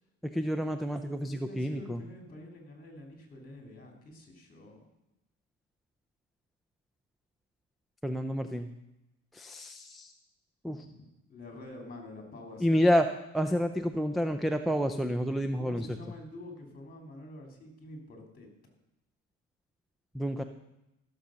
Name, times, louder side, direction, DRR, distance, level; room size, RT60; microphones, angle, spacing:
voice 1, 0.2-2.0 8.0-8.7 9.3-10.1 10.6-10.9 12.6-13.1 13.3-15.9 20.1-20.4, equal, ahead, 8 dB, 0.4 m, -29 dB
voice 2, 1.4-4.9 10.7-12.8 15.5-18.5, left 1 dB, 25° left, 2 dB, 3.2 m, -47 dB
14.5 x 6.8 x 6.4 m, 0.92 s
cardioid pair, 130°, 33 cm